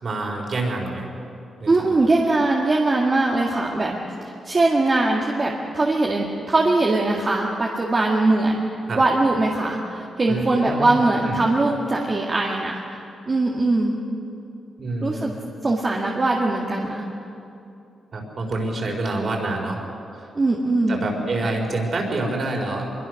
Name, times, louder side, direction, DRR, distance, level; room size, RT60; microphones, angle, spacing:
voice 1, 0.0-1.1 1.6-1.7 8.9-9.0 10.3-11.0 11.2-11.4 14.8-15.3 18.1-19.8 20.2-20.3 20.9-22.8, right 2 dB, 45° right, 1 dB, 4.7 m, -27 dB
voice 2, 1.7-8.6 8.9-13.0 13.3-14.0 15.0-15.3 15.6-17.0 20.4-21.0, right 2 dB, 30° right, -2 dB, 2.0 m, -21 dB
25.5 x 22.5 x 6.5 m, 2.7 s
cardioid pair, 125°, 0 cm